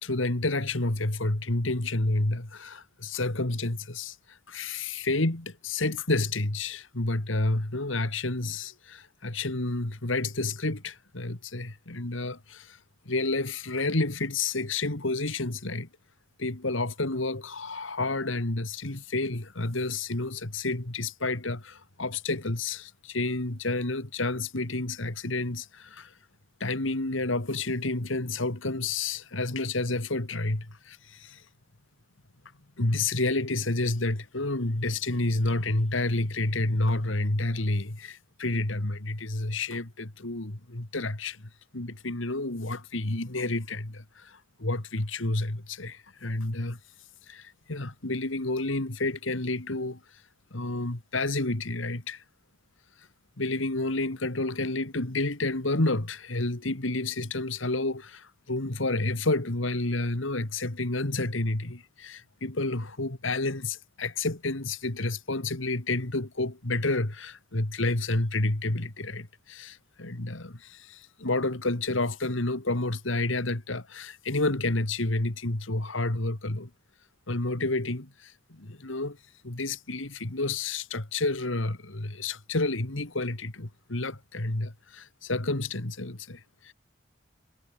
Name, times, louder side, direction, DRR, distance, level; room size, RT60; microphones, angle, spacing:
voice 1, 0.0-12.8 13.1-15.9 16.4-26.1 26.6-31.4 32.8-46.8 47.3-50.0 50.5-52.2 53.4-76.7 77.3-79.2 79.4-86.7, left 2 dB, 80° left, 2.3 m, -30 dB
head